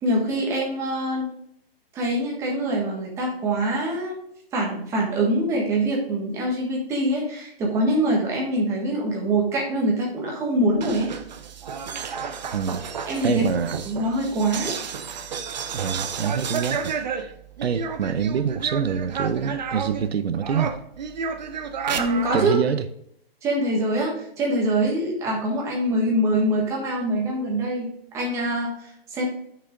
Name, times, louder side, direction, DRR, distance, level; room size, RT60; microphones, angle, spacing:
voice 1, 0.0-1.3 1.9-4.1 4.5-11.1 13.1-13.4 13.9-14.7 21.9-22.6 23.4-29.2, right 1 dB, 10° right, 1.5 m, -24 dB
sound 1, 10.7-20.1 20.4-22.5, right 6 dB, 45° right, 0.8 m, -31 dB
voice 2, 13.2-13.8 15.7-17.3 17.6-20.7 22.3-22.8, right 7 dB, 85° right, 0.8 m, -25 dB
9.3 x 6.3 x 3.7 m
hypercardioid pair, 165°, 30 cm